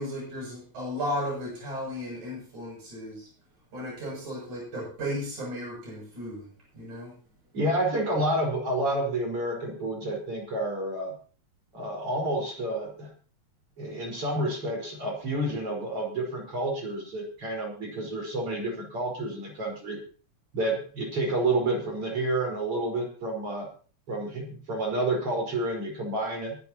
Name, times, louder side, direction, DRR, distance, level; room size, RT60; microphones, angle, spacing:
voice 1, 0.0-3.3 3.7-6.5 6.7-7.1, equal, 85° right, -3 dB, 9.1 m, -35 dB
voice 2, 7.5-11.1 11.7-13.1 13.8-20.0 20.5-23.7 24.1-26.6, right 1 dB, 50° right, 0 dB, 5.9 m, -29 dB
24.0 x 11.5 x 3.0 m, 0.39 s
omnidirectional pair, 3.4 m